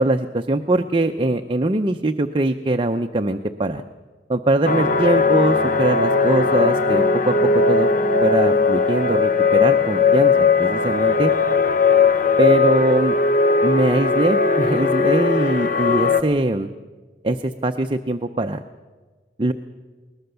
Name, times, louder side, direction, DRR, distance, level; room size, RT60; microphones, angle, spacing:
voice 1, 0.0-3.8 4.3-7.3 7.7-7.9 8.2-11.3 12.4-13.2 13.6-16.7 17.2-18.6 19.4-19.5, right 2 dB, 30° right, 6 dB, 0.7 m, -21 dB
sound 1, 4.6-16.2, left 4 dB, 50° left, 0.9 m, -18 dB
21.0 x 20.0 x 6.9 m, 1.4 s
head